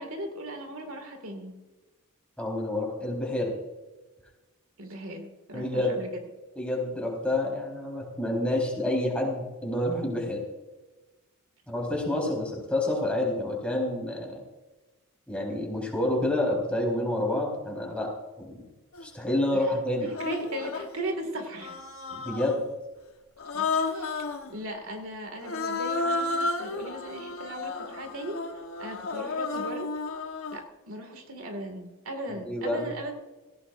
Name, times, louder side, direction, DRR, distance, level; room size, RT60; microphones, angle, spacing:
voice 1, 0.0-1.5 4.8-6.1 20.0-21.8 23.5-28.4 28.8-29.9 30.5-33.1, right 1 dB, 70° right, 4 dB, 2.2 m, -37 dB
voice 2, 2.4-3.5 5.5-6.0 6.5-10.4 11.7-14.4 15.3-18.6 19.0-20.1 22.1-22.6 32.3-32.9, left 1 dB, 5° left, -2 dB, 4.2 m, -28 dB
Human voice, 18.9-19.1 20.1-21.0 21.6-22.7 23.4-24.5 25.4-30.7, left 3 dB, 70° left, 1.1 m, -32 dB
18.0 x 16.5 x 2.6 m, 1.2 s
head